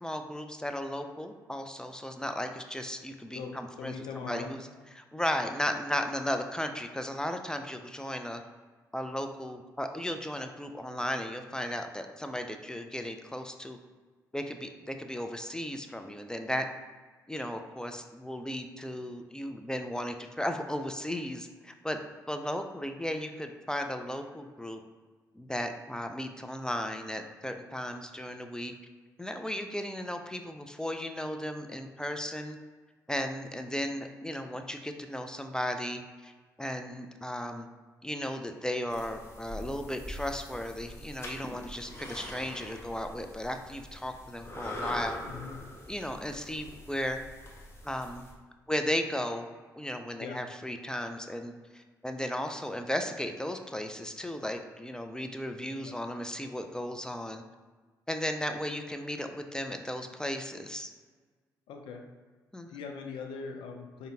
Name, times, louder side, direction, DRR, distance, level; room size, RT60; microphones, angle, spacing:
voice 1, 0.0-4.6 5.0-8.4 8.9-13.8 14.3-16.7 17.3-22.0 22.3-24.8 25.3-28.7 29.2-32.6 33.1-36.3 36.6-37.7 38.0-45.2 45.9-47.2 47.8-48.3 48.7-49.5 49.7-57.4 58.1-60.9 62.5-62.8, equal, 10° left, 6 dB, 0.4 m, -35 dB
voice 2, 3.3-4.6 45.2-45.6 50.2-50.4 55.8-55.9 61.7-62.0 62.7-64.1, left 5 dB, 65° left, 3 dB, 0.4 m, -41 dB
sound 1, 38.9-48.3, left 1 dB, 30° left, 1.1 m, -43 dB
4.9 x 2.7 x 2.7 m, 1.4 s
hypercardioid pair, 45°, 9 cm